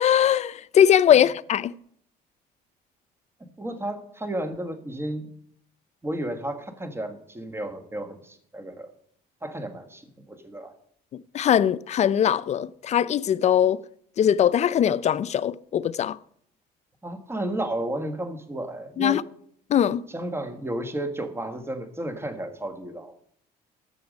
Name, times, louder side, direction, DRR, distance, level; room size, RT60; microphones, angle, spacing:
voice 1, 0.0-1.7 11.3-13.8 14.2-16.2 19.0-19.2 19.7-20.0, left 9 dB, 40° left, 0.4 m, -21 dB
voice 2, 3.6-5.3 6.0-8.9 9.4-10.7 17.0-19.2 20.1-23.1, right 1 dB, 15° right, 1.5 m, -32 dB
13.5 x 6.9 x 5.2 m
cardioid pair, 110°, 17 cm